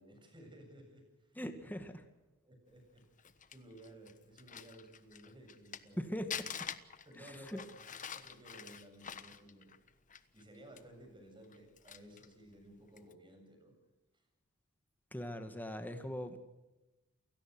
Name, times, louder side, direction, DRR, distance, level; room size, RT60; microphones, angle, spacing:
voice 1, 0.0-1.4 2.4-3.0 3.5-6.1 7.1-7.8 8.1-9.7 10.3-13.7 14.1-14.2, right 1 dB, 20° right, 5 dB, 7.4 m, -56 dB
voice 2, 1.4-2.0 6.0-6.3 7.2-7.6 15.1-16.4, equal, 10° left, 7 dB, 2.0 m, -41 dB
Crumpling crinkling, 3.0-5.9 6.3-10.4 10.8-10.9 11.4-12.3 12.9-13.1, left 8 dB, 35° left, 1.2 m, -46 dB
29.5 x 17.5 x 6.3 m, 1.0 s
head